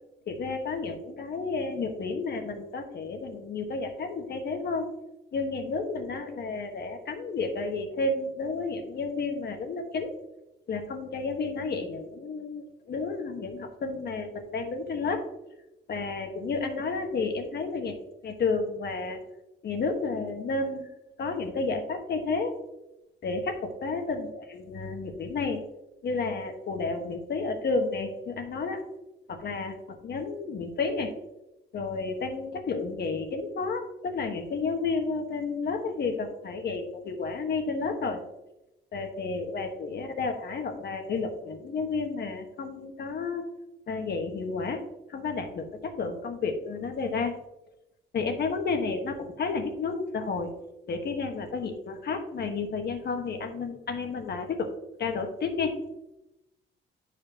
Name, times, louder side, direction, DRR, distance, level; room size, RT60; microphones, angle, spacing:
voice 1, 0.3-4.9 5.3-10.1 10.7-15.2 15.9-18.0 18.2-19.2 19.6-20.9 21.2-22.5 23.2-25.6 26.0-28.8 29.3-31.1 31.7-38.2 38.9-43.4 43.9-44.8 45.1-47.3 48.1-50.5 50.9-54.7 55.0-55.7, left 4 dB, 55° left, 5 dB, 1.4 m, -31 dB
11.0 x 4.9 x 2.8 m, 0.92 s
cardioid pair, 90°, 20 cm